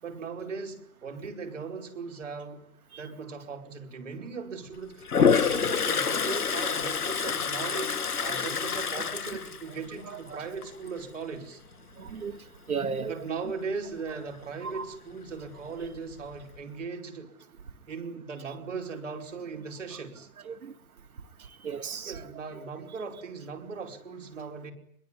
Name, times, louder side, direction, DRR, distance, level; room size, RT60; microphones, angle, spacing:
voice 1, 0.0-2.6 3.0-11.6 13.1-17.3 17.9-20.3 22.0-24.7, right 5 dB, 55° right, 5.1 m, -38 dB
Toilet flush, 5.0-10.2 10.6-11.0 15.5-15.6 15.8-16.6, left 6 dB, 90° left, 2.5 m, -27 dB
voice 2, 12.0-13.1 14.6-14.9 20.5-20.7 21.6-22.1, right 5 dB, 75° right, 2.2 m, -34 dB
24.0 x 22.0 x 10.0 m
hypercardioid pair, 170°, 44 cm